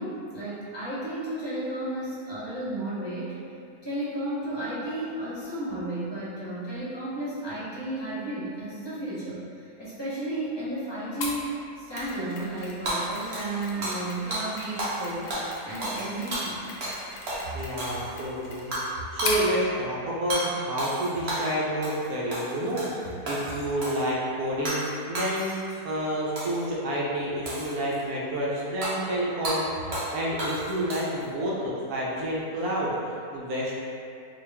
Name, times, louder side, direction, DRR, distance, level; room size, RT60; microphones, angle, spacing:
voice 1, 0.0-3.3 3.8-15.3 15.6-16.7, right 1 dB, 20° left, -11 dB, 0.7 m, -33 dB
Mechanisms, 11.2-19.5, left 3 dB, 85° left, 1.2 m, -38 dB
Hammer / Shatter, 12.9-14.1 14.3-14.4 14.8-15.0 15.3-17.0 17.3-17.4 17.8-18.2 18.7-18.9 19.2-19.4 20.3-20.4 20.8-21.5 21.8-22.1 22.3-22.9 23.3-24.1 24.6-24.9 25.1-25.7 26.4-26.7 27.5-28.0 28.8-28.9 29.4-29.6 29.9-30.1 30.4-31.2, right 1 dB, 50° right, 0.9 m, -32 dB
voice 2, 17.5-25.6 25.8-33.8, equal, 70° right, -5 dB, 1.1 m, -29 dB
3.8 x 2.3 x 3.4 m, 2.4 s
omnidirectional pair, 1.7 m